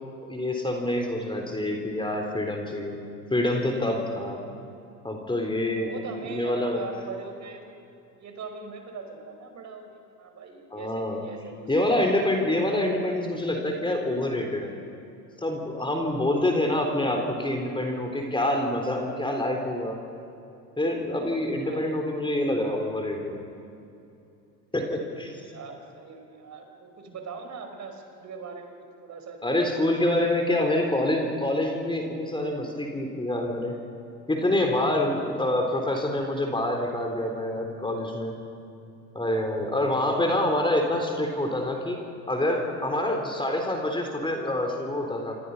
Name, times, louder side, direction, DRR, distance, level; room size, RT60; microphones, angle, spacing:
voice 1, 0.3-3.0 3.3-4.4 5.0-5.9 6.2-6.8 10.7-11.2 11.7-14.7 15.4-20.0 20.8-23.4 24.7-25.5 29.4-33.7 34.3-38.4 39.1-42.0 42.3-45.4, left 1 dB, 10° left, 2 dB, 3.7 m, -26 dB
voice 2, 5.7-7.7 8.1-11.9 21.6-22.0 25.5-30.6 31.0-31.1, right 4 dB, 35° right, 5 dB, 4.9 m, -41 dB
27.5 x 26.0 x 5.6 m, 2.7 s
hypercardioid pair, 80°, 47 cm